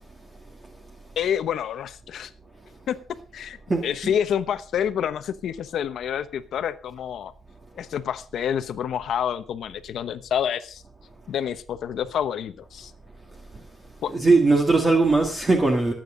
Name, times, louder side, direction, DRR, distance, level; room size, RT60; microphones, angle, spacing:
voice 1, 1.2-2.3 2.9-3.0 3.3-7.3 7.8-10.8 11.3-12.9 14.0-14.1, left 9 dB, 70° left, 1.0 m, -28 dB
voice 2, 14.1-15.9, right 3 dB, 20° right, 2.1 m, -19 dB
18.0 x 9.1 x 3.9 m
cardioid pair, 140°, 0 cm